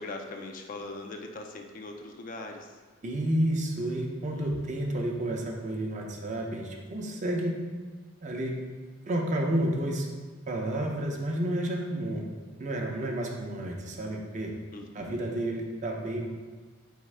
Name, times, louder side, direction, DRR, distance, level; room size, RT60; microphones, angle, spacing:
voice 1, 0.0-2.8 4.4-4.8 14.7-15.2, left 2 dB, 45° left, 4 dB, 0.4 m, -41 dB
voice 2, 3.0-7.5 8.2-8.5 9.1-10.1 10.5-12.2 12.6-14.5 14.9-16.3, right 1 dB, 40° right, 0 dB, 0.6 m, -30 dB
4.3 x 3.6 x 3.2 m, 1.4 s
head